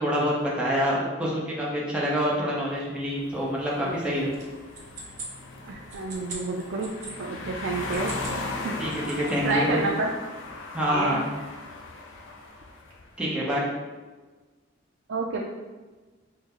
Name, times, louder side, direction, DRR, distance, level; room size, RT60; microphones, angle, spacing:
voice 1, 0.0-4.4 8.8-9.8 10.7-11.3 13.2-13.7, equal, 5° right, -5 dB, 0.7 m, -26 dB
sound 1, 2.8-13.1, left 2 dB, 80° left, 0.5 m, -38 dB
sound 2, 4.3-7.1 7.8-8.4 8.7-9.5, right 3 dB, 40° right, 0.7 m, -41 dB
voice 2, 5.7-6.9 7.2-8.1 8.6-8.7 9.4-10.1 10.9-11.2 15.1-15.4, right 3 dB, 90° right, -2 dB, 0.4 m, -29 dB
4.1 x 2.1 x 3.7 m, 1.3 s
head